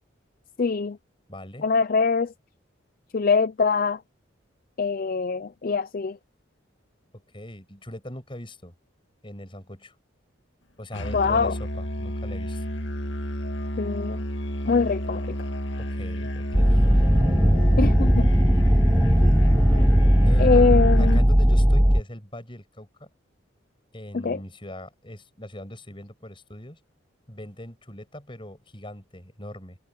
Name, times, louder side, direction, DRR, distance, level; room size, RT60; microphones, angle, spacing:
voice 1, 0.6-1.0 1.6-2.3 3.1-4.0 4.8-6.2 11.1-11.6 13.8-14.2 14.7-15.4 17.8-18.3 19.2-19.3 20.4-21.2 24.1-24.4, left 4 dB, 45° left, 0.4 m, -23 dB
voice 2, 1.3-1.7 7.3-8.7 9.2-9.9 10.8-12.7 15.8-17.0 20.2-20.6 21.0-23.1 23.9-26.8 27.3-29.8, left 1 dB, 25° left, 6.7 m, -40 dB
Musical instrument, 10.9-21.3, left 1 dB, 65° left, 2.0 m, -31 dB
sound 1, 16.5-22.0, equal, 5° right, 0.7 m, -18 dB
head